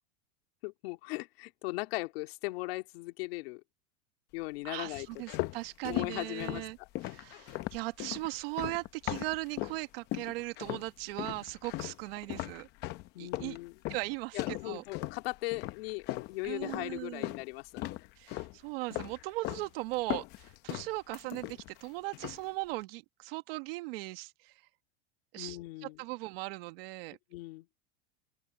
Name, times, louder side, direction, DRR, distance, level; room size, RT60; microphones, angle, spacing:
voice 1, 0.6-3.6 4.3-5.1 5.9-6.9 13.1-13.8 14.3-17.9 25.4-26.0 27.3-27.7, left 22 dB, 60° left, 2.4 m, -38 dB
voice 2, 4.6-6.8 7.0-12.7 13.2-13.6 13.9-14.8 16.4-17.3 18.2-24.5 25.3-27.2, right 21 dB, 55° right, 1.6 m, -38 dB
sound 1, 4.9-9.8 10.1-10.9 11.2-17.5 17.8-18.6 18.9-19.7 19.9-21.8 22.1-22.5, left 17 dB, 30° left, 0.7 m, -38 dB
open air
supercardioid pair, 170°, 34 cm